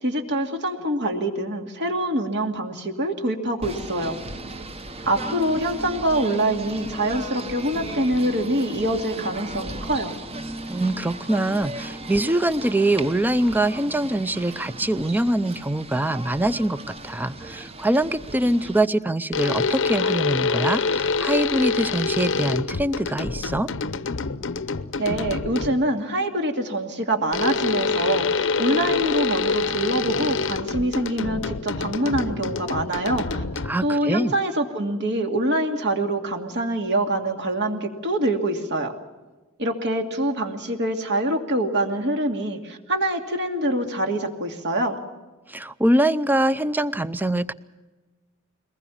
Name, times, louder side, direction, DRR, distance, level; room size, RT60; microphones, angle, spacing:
voice 1, 0.0-4.1 5.0-10.1 25.0-33.4 33.8-38.9 39.6-45.0, right 1 dB, 55° right, 4 dB, 2.4 m, -25 dB
Singing / Bird, 3.6-18.9, right 2 dB, 30° right, 1.1 m, -36 dB
voice 2, 10.7-23.7 33.7-34.3 45.5-47.5, right 1 dB, 10° right, 15 dB, 0.6 m, -23 dB
sound 1, 19.3-25.9 27.3-34.0, left 4 dB, 65° left, 0.8 m, -26 dB
22.5 x 20.0 x 7.2 m, 1.2 s
head